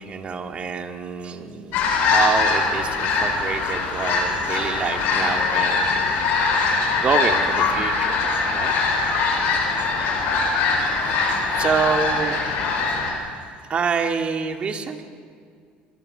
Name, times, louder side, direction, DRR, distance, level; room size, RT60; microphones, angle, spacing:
voice 1, 0.0-6.2 7.0-8.2 8.5-8.8 11.0-11.1 11.6-12.4 13.1-13.3 13.7-15.0, right 6 dB, 35° right, 4 dB, 2.1 m, -27 dB
sound 1, 1.7-13.1, left 4 dB, 70° left, 7.1 m, -22 dB
27.5 x 22.5 x 6.7 m, 2.1 s
cardioid pair, 120°, 3 cm